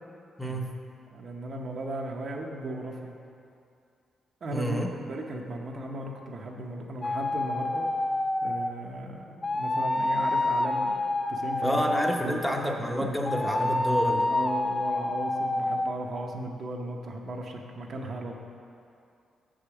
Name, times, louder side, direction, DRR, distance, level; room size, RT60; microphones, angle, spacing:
voice 1, 0.4-0.7 4.5-4.9 11.6-14.3, equal, 5° left, 1 dB, 0.8 m, -29 dB
voice 2, 1.1-3.1 4.4-7.9 8.4-11.8 12.2-12.4 13.0-13.1 14.3-18.3, right 1 dB, 60° right, 1 dB, 0.8 m, -36 dB
sound 1, 7.0-8.8 9.4-12.3 13.2-15.9, left 2 dB, 20° left, 0.3 m, -28 dB
6.7 x 5.0 x 5.9 m, 2.5 s
cardioid pair, 70°, 0 cm